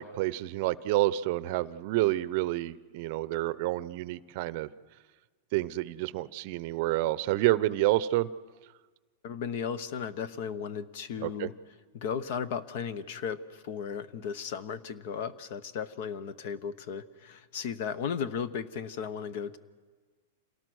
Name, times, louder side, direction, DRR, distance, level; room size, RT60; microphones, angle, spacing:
voice 1, 0.0-4.7 5.5-8.3 11.2-11.5, right 16 dB, 50° right, 17 dB, 0.6 m, -29 dB
voice 2, 9.2-11.5 11.9-19.6, left 7 dB, 55° left, 15 dB, 1.0 m, -35 dB
27.5 x 18.0 x 6.3 m, 1.4 s
supercardioid pair, 145°, 0 cm